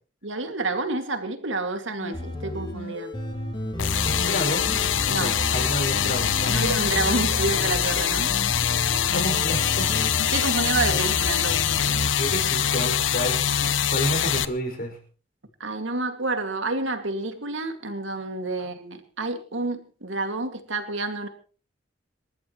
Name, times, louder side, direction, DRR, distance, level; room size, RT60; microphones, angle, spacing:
voice 1, 0.2-3.1 5.1-5.3 6.5-8.3 10.3-11.8 15.6-21.3, right 3 dB, 90° right, 7 dB, 2.3 m, -29 dB
sound 1, 2.0-12.4, equal, 25° left, 5.8 m, -33 dB
sound 2, 3.8-14.4, left 9 dB, 85° left, 0.8 m, -24 dB
voice 2, 4.0-6.8 9.1-10.0 10.9-11.0 12.2-13.5 13.9-15.0 18.6-18.7, equal, 50° left, 4 dB, 6.0 m, -30 dB
27.5 x 14.0 x 3.1 m, 0.38 s
head